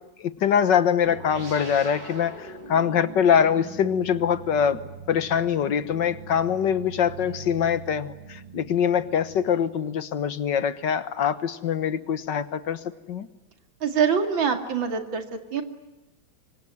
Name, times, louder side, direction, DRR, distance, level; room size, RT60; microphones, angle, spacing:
voice 1, 0.2-4.8 5.1-12.8 13.1-13.3, left 8 dB, 70° left, 14 dB, 1.9 m, -23 dB
sound 1, 1.0-9.9, right 5 dB, 65° right, 5.6 m, -42 dB
voice 2, 13.8-15.6, right 6 dB, 85° right, 7 dB, 3.2 m, -24 dB
26.0 x 24.0 x 9.5 m, 1.0 s
omnidirectional pair, 2.1 m